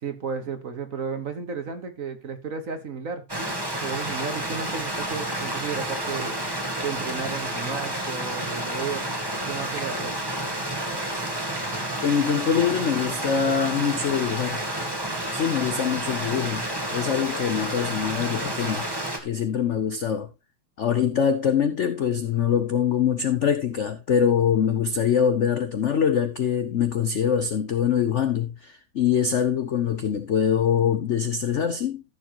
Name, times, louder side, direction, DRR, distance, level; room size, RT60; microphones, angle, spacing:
voice 1, 0.0-3.5 3.8-6.4 6.8-9.0 9.5-10.1, right 6 dB, 45° right, 1.6 m, -33 dB
Stream, 3.3-19.2, right 1 dB, 10° right, 1.5 m, -30 dB
voice 2, 12.0-14.6 15.3-18.9 19.2-20.3 20.8-32.0, left 8 dB, 75° left, 0.6 m, -24 dB
14.0 x 7.1 x 3.0 m
omnidirectional pair, 2.2 m